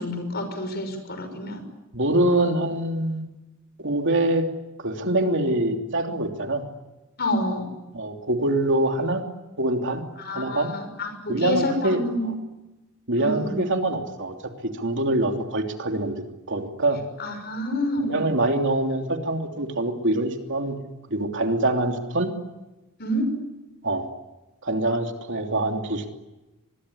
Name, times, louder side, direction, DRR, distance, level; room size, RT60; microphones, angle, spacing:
voice 1, 0.0-1.6 7.2-7.7 10.2-12.3 13.2-13.6 17.2-18.2 23.0-23.3, left 1 dB, 50° left, 8 dB, 6.2 m, -28 dB
voice 2, 1.9-3.2 3.8-4.5 4.8-6.6 7.9-9.2 9.6-10.0 10.3-10.7 11.3-12.3 13.1-14.3 14.8-16.1 16.5-17.0 18.1-20.8 21.1-22.3 23.8-24.1 24.6-26.1, right 1 dB, 60° right, 4 dB, 3.1 m, -24 dB
24.5 x 22.0 x 9.8 m, 1.0 s
head